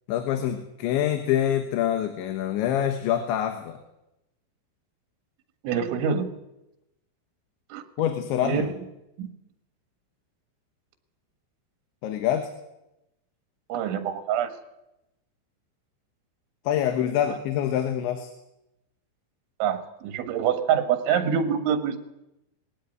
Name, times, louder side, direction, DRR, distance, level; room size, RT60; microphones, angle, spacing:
voice 1, 0.1-3.8 8.0-8.7 12.0-12.5 16.7-18.3, left 10 dB, 80° left, 7 dB, 3.6 m, -25 dB
voice 2, 5.6-6.3 7.7-7.8 8.4-8.7 9.2-9.3 13.7-14.5 19.6-22.0, right 8 dB, 90° right, 8 dB, 4.0 m, -25 dB
20.5 x 16.5 x 9.4 m, 0.91 s
omnidirectional pair, 5.3 m